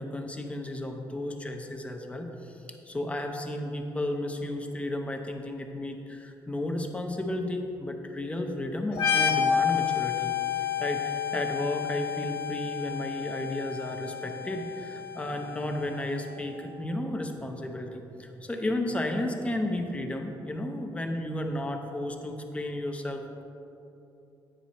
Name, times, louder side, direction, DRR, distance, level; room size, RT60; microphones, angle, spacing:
voice 1, 0.0-2.6 2.9-23.4, left 1 dB, 15° left, 3 dB, 0.6 m, -33 dB
sound 1, 8.9-16.4, left 8 dB, 85° left, 1.2 m, -30 dB
9.0 x 5.2 x 4.1 m, 3.0 s
cardioid pair, 140°, 8 cm